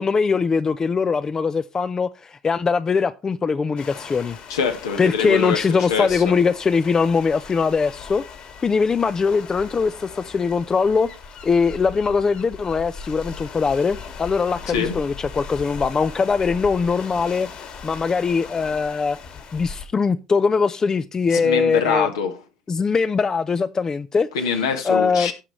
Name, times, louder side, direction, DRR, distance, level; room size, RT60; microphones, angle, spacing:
voice 1, 0.0-4.4 5.0-8.2 8.6-11.1 11.4-17.5 17.8-19.2 19.5-22.1 22.7-24.3 24.8-25.3, left 5 dB, 25° left, 0.6 m, -21 dB
sound 1, 3.8-19.8, left 5 dB, 50° left, 3.0 m, -39 dB
voice 2, 4.5-6.4 14.7-14.9 21.3-22.4 24.3-25.3, left 6 dB, 80° left, 1.8 m, -24 dB
17.0 x 6.1 x 3.2 m
hypercardioid pair, 65°, 2 cm